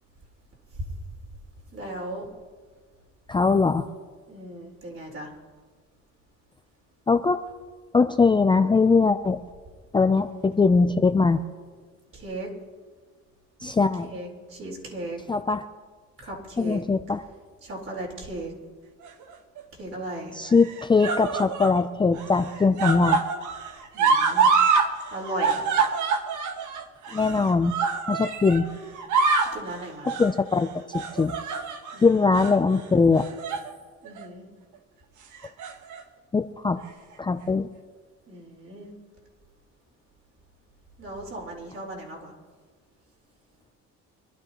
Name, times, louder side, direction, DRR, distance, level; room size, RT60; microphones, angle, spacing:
voice 1, 1.7-2.3 4.3-5.3 10.1-10.6 12.1-12.5 14.0-15.2 16.2-16.8 17.6-18.5 19.7-20.4 23.9-24.5 25.1-25.7 29.5-30.1 31.9-32.3 34.0-34.5 38.3-38.9 41.0-42.3, right 1 dB, 45° right, -1 dB, 4.2 m, -37 dB
voice 2, 3.3-3.9 7.1-7.4 7.9-9.4 9.9-11.4 13.6-14.1 15.3-15.6 16.6-17.2 20.3-23.2 27.1-27.7 28.1-28.7 30.1-30.7 30.9-31.3 32.0-33.3 36.3-36.8 37.2-37.7, left 4 dB, 15° left, 8 dB, 0.5 m, -21 dB
Sad Screams, 19.0-19.6 20.5-21.8 22.1-24.9 25.2-28.6 29.0-29.6 30.0-30.3 30.9-32.0 32.3-32.5 33.2-33.7 34.1-34.2 35.3-36.0 36.9-37.0, right 5 dB, 85° right, 1.4 m, -25 dB
25.0 x 12.5 x 3.0 m, 1.5 s
cardioid pair, 115°, 29 cm